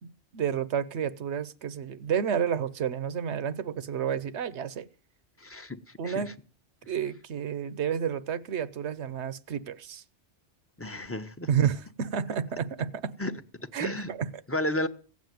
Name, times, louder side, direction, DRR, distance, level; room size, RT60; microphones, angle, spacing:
voice 1, 0.0-4.9 6.0-6.3 6.9-10.0 11.5-13.1 13.7-14.3, right 8 dB, 70° right, 1.1 m, -30 dB
voice 2, 5.4-6.3 6.8-6.9 10.8-11.7 13.2-13.3 13.8-14.1 14.5-14.9, left 1 dB, 15° left, 0.9 m, -33 dB
16.5 x 7.4 x 9.3 m
omnidirectional pair, 1.2 m